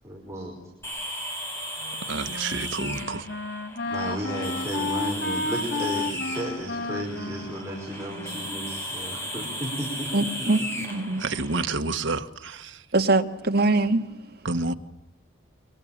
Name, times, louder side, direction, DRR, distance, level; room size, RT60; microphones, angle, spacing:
voice 1, 0.0-0.6 3.9-10.3, right 1 dB, 15° right, 5.2 m, -34 dB
sound 1, 0.8-11.6, equal, 15° left, 7.7 m, -36 dB
Wind instrument woodwind instrument, 1.8-9.0, left 3 dB, 65° left, 1.7 m, -33 dB
voice 2, 2.1-3.2 11.2-12.8 14.4-14.7, right 3 dB, 75° right, 1.4 m, -29 dB
voice 3, 10.1-11.3 12.9-14.4, right 2 dB, 50° right, 1.9 m, -23 dB
29.5 x 24.5 x 7.4 m
head